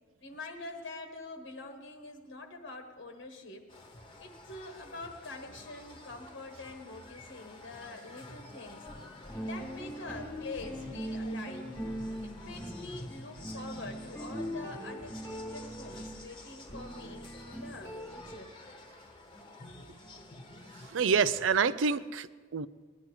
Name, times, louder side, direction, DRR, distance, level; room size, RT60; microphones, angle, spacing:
voice 1, 0.2-3.7 4.2-8.9 9.4-11.7 12.2-18.5, left 2 dB, 75° left, 4 dB, 1.2 m, -45 dB
sound 1, 3.7-21.7, left 2 dB, 25° left, 1.2 m, -50 dB
sound 2, 8.9-18.4, equal, 10° left, 1.5 m, -41 dB
voice 2, 20.9-22.7, right 6 dB, 80° right, 16 dB, 0.5 m, -27 dB
19.0 x 11.0 x 4.8 m, 1.5 s
head